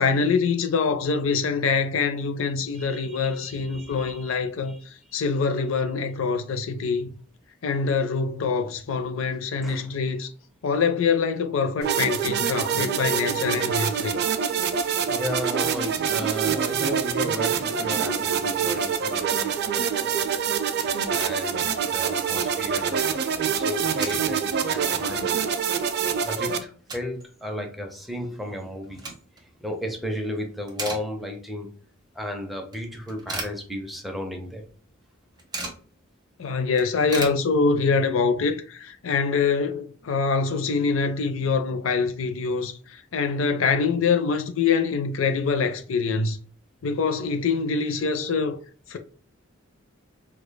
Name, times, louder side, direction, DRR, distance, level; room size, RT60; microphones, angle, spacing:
voice 1, 0.0-4.8 5.1-7.1 7.6-10.3 10.6-14.2 36.4-46.4 46.8-48.6 48.9-49.0, left 5 dB, 70° left, 0.5 m, -24 dB
voice 2, 2.7-4.8 9.6-10.0 15.1-20.3 21.1-23.1 23.5-25.6 26.2-31.7 32.1-34.7, equal, ahead, 0.6 m, -34 dB
sound 1, 11.8-26.6, right 7 dB, 55° right, 0.4 m, -25 dB
sound 2, 20.5-21.4 21.7-21.8 22.1-22.4 23.6-24.3 24.8-24.9 25.4-25.5 25.8-27.2 27.5-27.6 28.6-29.5 30.0-30.3 30.6-31.6 31.9-32.0 32.7-34.2 34.5-34.6 34.8-35.9 36.3-36.4 36.6-38.0, right 2 dB, 20° right, 0.9 m, -37 dB
4.8 x 2.3 x 2.2 m
head